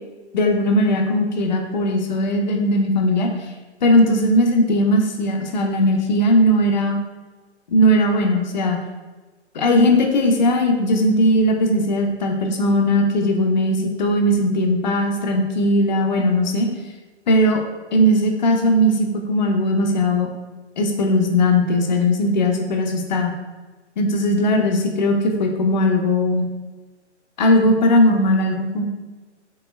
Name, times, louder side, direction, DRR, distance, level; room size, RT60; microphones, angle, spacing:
voice 1, 0.3-3.3 3.8-7.0 7.7-8.8 9.5-16.7 17.3-17.6 17.9-20.3 20.8-23.3 24.0-26.5 27.4-28.8, left 1 dB, 40° left, 3 dB, 0.7 m, -18 dB
4.5 x 3.6 x 3.2 m, 1.3 s
hypercardioid pair, 145°, 35 cm